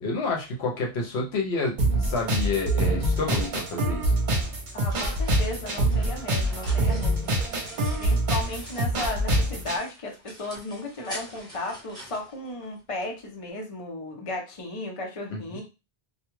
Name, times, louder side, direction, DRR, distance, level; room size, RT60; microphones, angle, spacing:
voice 1, 0.0-4.1 15.3-15.4, left 3 dB, 80° left, 1 dB, 1.0 m, -29 dB
sound 1, 1.8-9.8, right 1 dB, 50° right, 0.8 m, -25 dB
sound 2, 4.6-9.2 9.5-13.1, equal, 5° left, 0.8 m, -45 dB
voice 2, 4.7-7.3 8.0-15.6, left 2 dB, 35° left, 1 dB, 0.7 m, -35 dB
2.3 x 2.3 x 3.0 m, 0.28 s
omnidirectional pair, 1.1 m